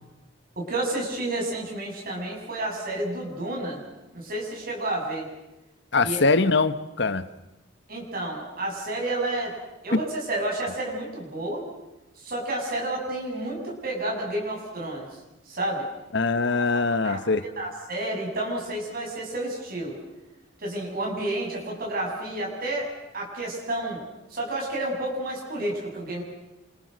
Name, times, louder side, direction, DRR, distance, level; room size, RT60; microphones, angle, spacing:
voice 1, 0.6-3.8 4.1-5.3 6.0-6.2 7.9-9.5 9.8-11.7 12.2-15.1 15.5-15.9 16.3-16.6 17.0-20.0 20.6-24.0 24.3-26.2, right 1 dB, 50° right, -1 dB, 7.0 m, -30 dB
voice 2, 5.9-7.3 9.9-10.0 16.1-17.4, left 3 dB, 60° left, 13 dB, 1.2 m, -22 dB
29.0 x 26.0 x 6.5 m, 1.0 s
head